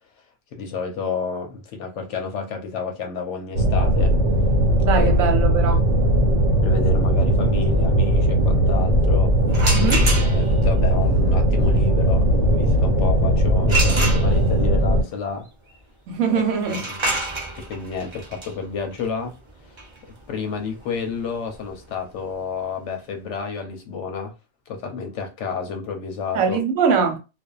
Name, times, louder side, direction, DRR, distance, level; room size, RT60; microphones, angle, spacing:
voice 1, 0.5-4.2 4.9-5.1 5.6-5.8 6.6-9.4 10.2-15.5 16.3-17.2 17.6-19.4 19.6-24.3 24.7-26.6, left 5 dB, 70° left, 0.8 m, -30 dB
sound 1, 3.5-15.0, equal, 65° right, 1.1 m, -18 dB
voice 2, 4.8-5.9 9.7-10.1 16.1-16.8 26.3-27.2, right 5 dB, 90° right, 1.1 m, -22 dB
sound 2, 9.5-10.7 13.7-14.7 16.6-22.2, right 2 dB, 40° right, 0.4 m, -28 dB
2.5 x 2.2 x 2.3 m
omnidirectional pair, 1.4 m